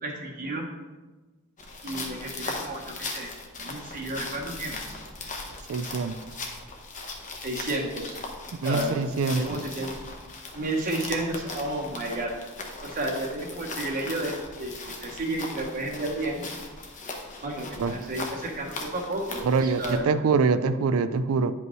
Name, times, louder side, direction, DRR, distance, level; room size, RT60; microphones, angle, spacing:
voice 1, 0.0-0.7 1.8-3.3 3.6-4.8 7.4-8.2 8.6-9.0 9.3-9.9 10.5-12.3 12.8-16.5 17.4-20.1, right 1 dB, 40° right, 0 dB, 0.8 m, -32 dB
sound 1, 1.6-20.0, left 3 dB, 35° left, 0.9 m, -39 dB
voice 2, 5.7-6.2 8.6-9.6 17.8-17.9 19.4-21.5, right 4 dB, 70° right, 12 dB, 0.4 m, -24 dB
9.5 x 5.3 x 3.0 m, 1.2 s
head